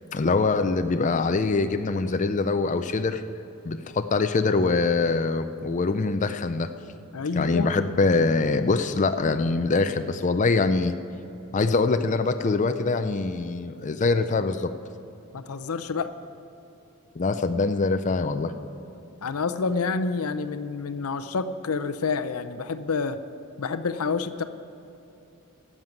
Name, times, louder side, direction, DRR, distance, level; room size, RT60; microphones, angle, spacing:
voice 1, 0.1-3.2 3.6-6.7 7.4-10.9 11.5-14.7 17.2-18.5, left 3 dB, 35° left, 8 dB, 0.4 m, -24 dB
voice 2, 7.1-7.7 15.3-16.1 19.2-23.2 23.6-24.4, left 4 dB, 85° left, 11 dB, 0.6 m, -28 dB
12.5 x 7.4 x 9.4 m, 2.9 s
head